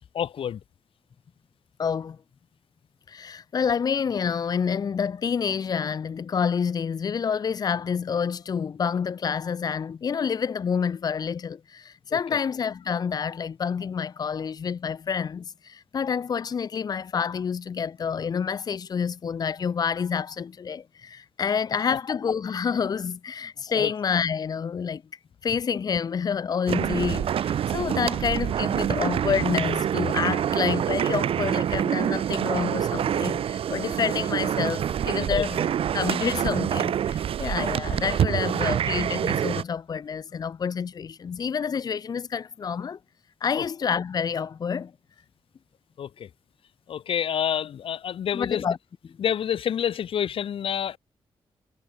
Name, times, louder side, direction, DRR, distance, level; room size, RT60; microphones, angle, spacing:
voice 1, 0.1-0.6 23.7-23.9 35.3-35.4 46.0-46.3 46.9-48.6 49.2-51.0, left 9 dB, 70° left, 3.4 m, -28 dB
voice 2, 1.8-2.2 3.1-25.0 25.4-35.7 35.9-43.0 43.4-44.9 48.3-48.8 49.0-49.1, left 6 dB, 45° left, 1.5 m, -28 dB
sound 1, 26.7-39.6, right 9 dB, 75° right, 2.3 m, -26 dB
wide cardioid pair, 170°, 10 cm